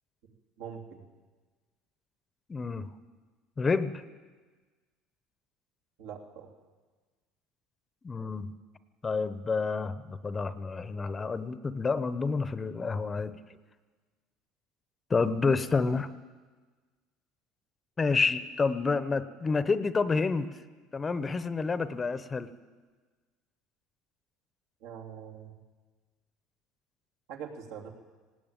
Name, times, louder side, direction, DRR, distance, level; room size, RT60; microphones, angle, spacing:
voice 1, 0.6-1.0 6.0-6.5 24.8-25.5 27.3-27.9, right 7 dB, 80° right, 1 dB, 3.1 m, -43 dB
voice 2, 2.5-2.9 3.6-4.0 8.0-8.5 9.0-13.4 15.1-16.1 18.0-20.5 20.9-22.5, left 4 dB, 20° left, 14 dB, 0.8 m, -29 dB
19.0 x 17.5 x 9.0 m, 1.4 s
cardioid pair, 130°, 0 cm